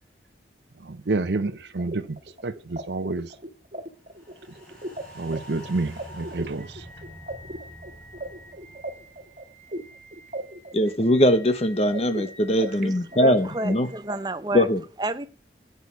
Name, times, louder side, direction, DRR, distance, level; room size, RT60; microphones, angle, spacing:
voice 1, 0.8-2.2 2.4-3.3 5.1-6.9, right 3 dB, 80° right, 0.7 m, -29 dB
sound 1, 1.3-14.1, right 1 dB, 45° right, 1.6 m, -39 dB
sound 2, 4.1-10.5 10.9-11.0, equal, 5° left, 7.7 m, -46 dB
voice 2, 10.7-13.9 14.5-14.8, equal, 35° left, 1.1 m, -21 dB
voice 3, 12.8-14.7 15.0-15.3, right 2 dB, 25° right, 0.7 m, -30 dB
12.5 x 8.3 x 4.7 m
head